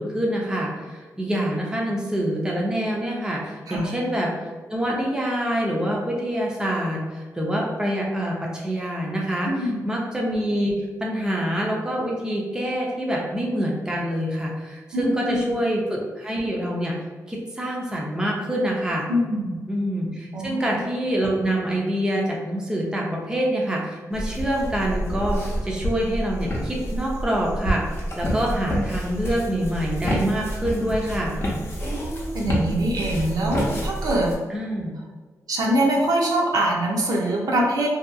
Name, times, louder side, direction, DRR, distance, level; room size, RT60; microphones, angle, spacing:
voice 1, 0.0-4.3 4.7-16.9 17.3-19.1 19.7-27.8 28.2-31.4 34.5-34.9, equal, 10° right, -3 dB, 0.5 m, -26 dB
voice 2, 9.4-9.8 14.9-15.4 19.1-19.6 20.3-20.7 31.8-34.3 35.5-37.9, right 1 dB, 70° right, -1 dB, 0.5 m, -23 dB
sound 1, 24.1-34.3, equal, 40° left, 0.6 m, -28 dB
2.7 x 2.4 x 2.3 m, 1.4 s
wide cardioid pair, 105°, 7 cm